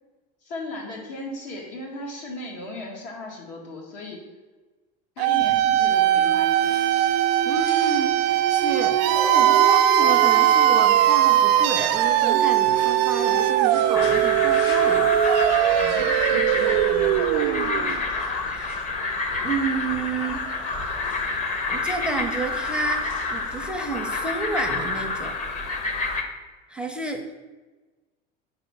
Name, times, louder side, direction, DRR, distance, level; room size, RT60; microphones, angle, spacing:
voice 1, 0.4-4.2 5.2-6.8 15.8-17.5, left 2 dB, 90° left, -1 dB, 1.8 m, -37 dB
sound 1, 5.2-18.0, right 12 dB, 90° right, 0.4 m, -20 dB
sound 2, 5.4-23.6, left 2 dB, 55° left, 1.5 m, -41 dB
voice 2, 7.4-15.1 18.4-18.8 19.4-20.4 20.8-21.0 21.7-25.4 26.7-27.4, right 3 dB, 5° right, 3 dB, 0.4 m, -30 dB
sound 3, 13.9-26.2, left 3 dB, 35° left, 0.7 m, -28 dB
4.8 x 4.1 x 5.8 m, 1.3 s
cardioid pair, 140°, 21 cm